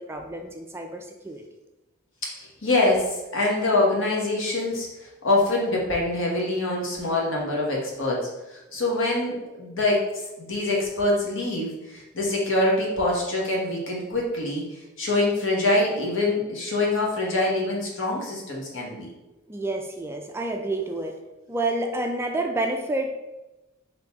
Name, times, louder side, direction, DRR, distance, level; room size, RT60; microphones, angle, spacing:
voice 1, 0.0-1.4 19.5-21.2 21.5-23.2, right 2 dB, 10° right, 3 dB, 0.3 m, -29 dB
voice 2, 2.3-4.9 5.2-14.7 15.0-19.1, left 2 dB, 65° left, -3 dB, 1.3 m, -25 dB
3.9 x 2.8 x 4.6 m, 1.0 s
head